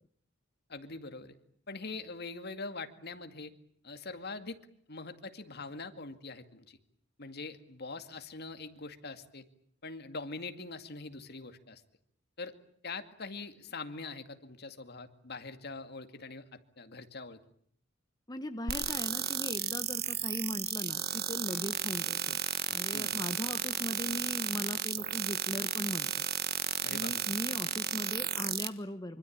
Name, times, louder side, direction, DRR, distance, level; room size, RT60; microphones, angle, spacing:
voice 1, 0.7-1.3 1.7-3.5 3.8-4.6 4.9-6.8 7.2-9.4 9.8-11.8 12.4-12.5 12.8-17.4 22.9-23.1 26.8-27.1, left 3 dB, 55° left, 8 dB, 2.3 m, -43 dB
voice 2, 18.3-22.4 22.7-26.1 26.9-29.2, left 1 dB, 20° left, 8 dB, 1.2 m, -39 dB
sound 1, 18.7-28.7, right 10 dB, 50° right, 1.5 m, -33 dB
25.5 x 25.0 x 8.7 m, 0.64 s
head